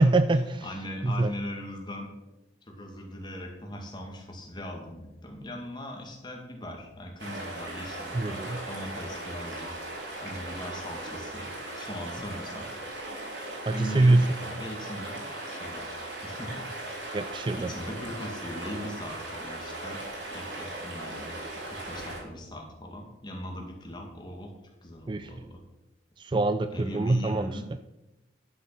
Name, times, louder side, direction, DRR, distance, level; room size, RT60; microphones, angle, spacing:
voice 1, 0.0-0.7 1.0-1.3 8.1-8.6 13.7-14.3 17.1-17.7 25.1-25.3 26.2-27.6, right 2 dB, 25° right, 11 dB, 0.3 m, -24 dB
voice 2, 0.6-2.1 2.7-9.7 10.2-12.7 13.7-14.2 14.4-15.2 15.5-15.9 16.2-16.7 17.0-17.2 17.5-20.0 20.3-21.4 21.6-24.5 24.8-25.6 26.7-27.7, left 1 dB, 25° left, 1 dB, 2.0 m, -40 dB
sound 1, 7.2-22.2, right 1 dB, 75° right, 3.8 m, -38 dB
11.0 x 7.1 x 6.0 m, 1.0 s
head